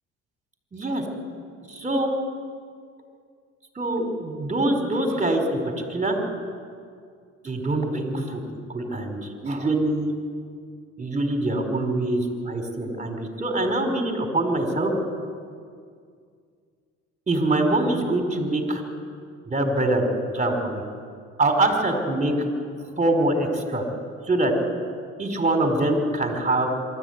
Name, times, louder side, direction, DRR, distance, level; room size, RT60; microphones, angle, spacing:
voice 1, 0.7-1.0 1.7-2.1 3.7-6.2 7.4-8.4 8.7-10.1 11.0-14.9 17.3-18.8 19.5-20.1 20.3-20.8 21.4-22.3 23.0-23.8 24.3-24.5 25.2-26.7, right 2 dB, 25° right, 4 dB, 4.8 m, -24 dB
24.0 x 13.5 x 9.7 m, 2.2 s
supercardioid pair, 75°, 32 cm